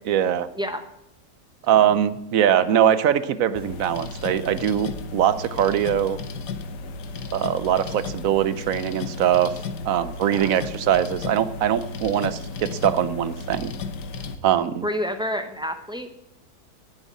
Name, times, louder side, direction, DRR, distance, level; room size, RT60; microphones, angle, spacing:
voice 1, 0.1-0.5 1.7-6.2 7.3-9.5 9.9-13.7 14.4-14.9, right 10 dB, 65° right, 14 dB, 1.0 m, -22 dB
sound 1, 3.6-14.4, left 4 dB, 80° left, 1.6 m, -34 dB
voice 2, 14.8-16.1, equal, 5° right, 7 dB, 0.6 m, -29 dB
11.0 x 7.9 x 8.5 m, 0.82 s
omnidirectional pair, 1.8 m